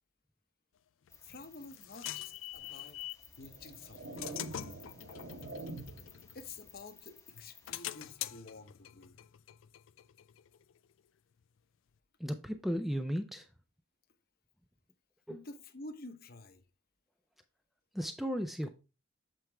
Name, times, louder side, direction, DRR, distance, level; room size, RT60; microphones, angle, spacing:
sound 1, 1.1-3.3 3.8-6.9 7.3-10.8, left 12 dB, 75° left, 0.4 m, -45 dB
sound 2, 1.1-7.8, left 5 dB, 15° left, 0.9 m, -57 dB
voice 1, 1.2-3.0 3.4-4.4 6.3-9.2 15.3-16.6, left 3 dB, 50° left, 0.8 m, -50 dB
sound 3, 2.6-2.7 3.4-6.2, right 2 dB, 65° right, 0.8 m, -45 dB
voice 2, 12.2-13.5 15.3-15.4 17.9-18.8, equal, ahead, 0.4 m, -35 dB
7.7 x 4.5 x 3.3 m
head